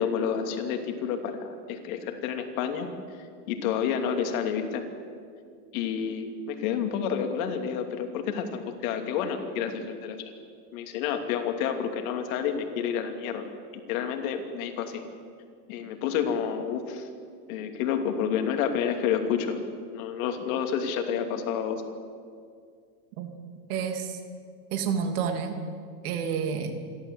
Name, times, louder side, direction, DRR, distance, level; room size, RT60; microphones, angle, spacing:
voice 1, 0.0-2.9 3.5-4.9 5.7-10.2 10.7-13.4 13.7-15.0 15.7-17.1 17.5-19.6 19.9-21.8, left 7 dB, 60° left, 5 dB, 2.9 m, -29 dB
voice 2, 23.7-24.2 24.7-25.6 26.0-26.8, right 6 dB, 70° right, 6 dB, 3.0 m, -29 dB
27.5 x 12.5 x 8.1 m, 2.2 s
supercardioid pair, 135°, 46 cm